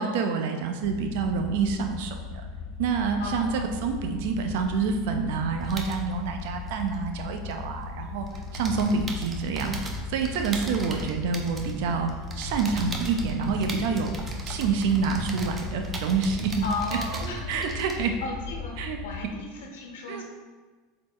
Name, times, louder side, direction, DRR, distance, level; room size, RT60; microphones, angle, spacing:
voice 1, 0.0-2.4 2.8-14.1 14.4-16.6 16.9-17.0 17.5-18.2 18.8-19.0 20.1-20.2, right 5 dB, 75° right, 5 dB, 0.7 m, -27 dB
sound 1, 0.8-19.3, left 5 dB, 60° left, 0.7 m, -38 dB
voice 2, 3.2-3.7 16.6-20.2, left 2 dB, 85° left, 1 dB, 1.2 m, -35 dB
sound 2, 5.6-7.8 8.1-18.2, right 2 dB, 25° right, 0.9 m, -37 dB
7.4 x 4.2 x 3.1 m, 1.4 s
supercardioid pair, 115°, 0 cm